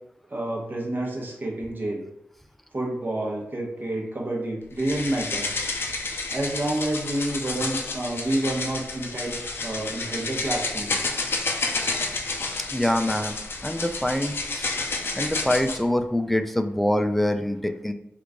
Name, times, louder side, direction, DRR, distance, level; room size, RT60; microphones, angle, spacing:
voice 1, 0.3-2.0 2.7-5.5 6.3-11.1, right 1 dB, 50° right, -2 dB, 1.0 m, -29 dB
sound 1, 4.8-15.8, left 3 dB, 70° left, 0.5 m, -30 dB
voice 2, 12.7-13.4 13.6-14.7 15.2-17.9, left 1 dB, 5° left, 7 dB, 0.4 m, -25 dB
3.1 x 2.5 x 3.5 m, 0.78 s
cardioid pair, 50°, 4 cm